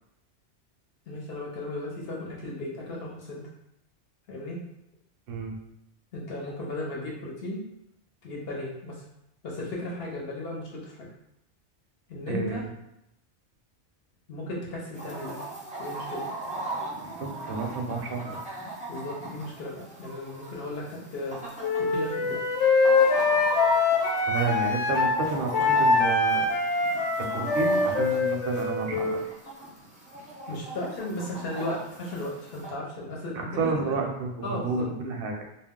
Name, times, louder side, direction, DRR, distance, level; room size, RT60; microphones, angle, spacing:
voice 1, 1.1-3.4 4.3-4.6 6.1-7.6 8.2-9.0 9.4-11.1 12.1-12.7 14.3-15.4 15.8-16.2 18.9-21.4 21.8-22.4 30.5-34.0 34.4-34.8, left 2 dB, 65° left, -3 dB, 1.0 m, -35 dB
voice 2, 12.3-12.7 17.0-18.6 23.7-23.8 24.3-26.5 27.2-29.4 33.3-35.4, right 4 dB, 65° right, 1 dB, 0.7 m, -31 dB
Chicken rooster, 14.9-32.7, right 2 dB, 10° right, 0.4 m, -38 dB
Wind instrument woodwind instrument, 21.6-25.2 25.5-29.3, left 3 dB, 90° left, 0.9 m, -24 dB
2.4 x 2.1 x 3.5 m, 0.81 s
omnidirectional pair, 1.1 m